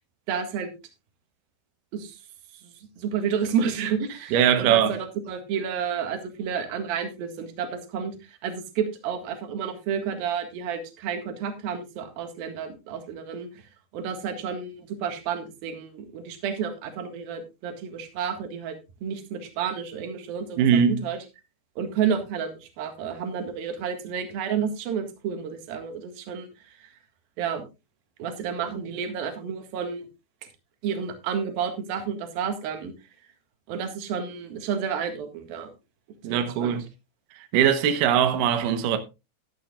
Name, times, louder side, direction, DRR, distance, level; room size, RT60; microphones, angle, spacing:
voice 1, 0.3-0.7 1.9-2.1 2.6-8.1 8.4-13.5 13.9-18.7 19.0-21.2 21.8-26.5 27.4-27.7 28.2-30.1 30.8-32.9 33.7-35.7 36.3-36.8, right 7 dB, 60° right, 3.1 m, -30 dB
voice 2, 4.3-5.0 20.6-21.0 36.2-36.8 37.5-39.0, right 8 dB, 90° right, 1.9 m, -21 dB
13.0 x 12.0 x 2.4 m
omnidirectional pair, 5.5 m